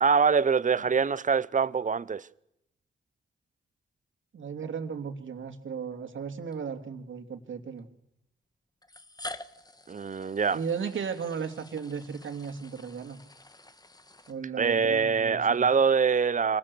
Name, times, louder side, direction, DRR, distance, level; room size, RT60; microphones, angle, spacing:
voice 1, 0.0-2.3 9.9-10.6 14.6-16.6, right 6 dB, 40° right, 0.9 m, -24 dB
voice 2, 4.3-7.9 10.5-13.2 14.3-15.7, right 6 dB, 70° right, 2.8 m, -35 dB
sound 1, 5.4-5.5 6.5-6.6 7.8-7.9 8.8-14.8, left 2 dB, 20° left, 1.6 m, -47 dB
26.0 x 18.5 x 7.1 m
supercardioid pair, 50°, 21 cm